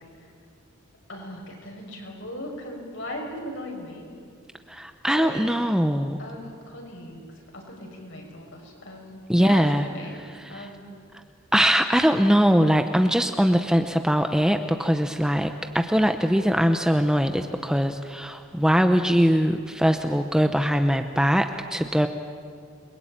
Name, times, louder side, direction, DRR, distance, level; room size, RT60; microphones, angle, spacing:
voice 1, 1.1-4.1 5.1-5.5 6.2-7.3 7.5-10.2 10.5-11.0, left 1 dB, 60° left, 1 dB, 6.4 m, -38 dB
voice 2, 4.7-6.2 9.3-9.9 10.5-10.7 11.5-22.1, equal, 5° right, 7 dB, 0.8 m, -21 dB
28.5 x 22.5 x 9.0 m, 2.3 s
head